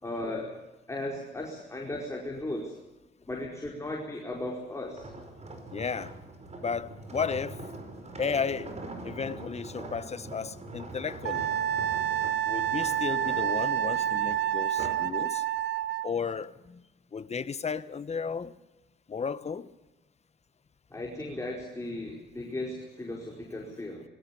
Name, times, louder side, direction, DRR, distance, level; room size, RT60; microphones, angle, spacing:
voice 1, 0.0-0.6 0.9-2.7 3.3-5.1 20.9-24.0, left 1 dB, 15° left, 4.8 m, -36 dB
sound 1, 4.9-15.1 15.6-15.8, right 2 dB, 35° right, 5.0 m, -43 dB
voice 2, 5.7-6.1 6.6-7.6 8.2-8.7 9.0-11.5 12.4-15.4 16.0-16.8 17.1-18.5 19.1-19.7, left 6 dB, 35° left, 1.2 m, -33 dB
Wind instrument woodwind instrument, 11.2-16.1, right 11 dB, 65° right, 1.0 m, -28 dB
21.5 x 17.5 x 8.5 m
cardioid pair, 90°, 20 cm